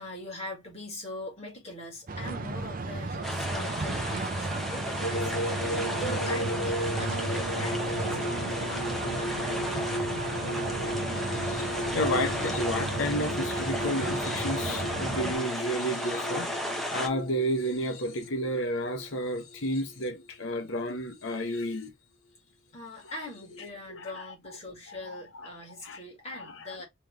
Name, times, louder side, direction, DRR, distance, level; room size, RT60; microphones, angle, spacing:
voice 1, 0.0-9.9 22.7-26.8, left 1 dB, 30° left, 1.9 m, -42 dB
sound 1, 2.1-15.3, right 3 dB, 40° right, 0.5 m, -35 dB
sound 2, 3.2-17.1, left 1 dB, ahead, 0.7 m, -35 dB
sound 3, 5.0-20.3 21.1-21.8 23.3-23.4, equal, 85° left, 1.2 m, -35 dB
voice 2, 11.9-21.9 23.5-24.2 24.9-25.5 25.8-26.0 26.3-26.7, equal, 60° left, 0.9 m, -32 dB
3.4 x 3.1 x 3.6 m
head